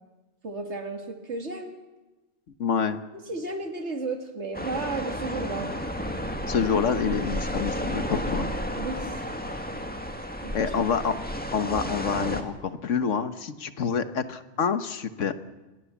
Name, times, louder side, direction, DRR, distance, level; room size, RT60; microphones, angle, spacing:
voice 1, 0.4-1.8 3.1-5.7 8.8-9.2 10.4-10.7, right 3 dB, 65° right, 4 dB, 2.7 m, -33 dB
voice 2, 2.6-3.0 6.5-8.5 10.5-11.2 11.5-15.3, left 6 dB, 90° left, 11 dB, 1.5 m, -27 dB
sound 1, 4.5-12.4, equal, 5° left, 2.0 m, -32 dB
26.5 x 19.5 x 7.3 m, 1.1 s
omnidirectional pair, 1.2 m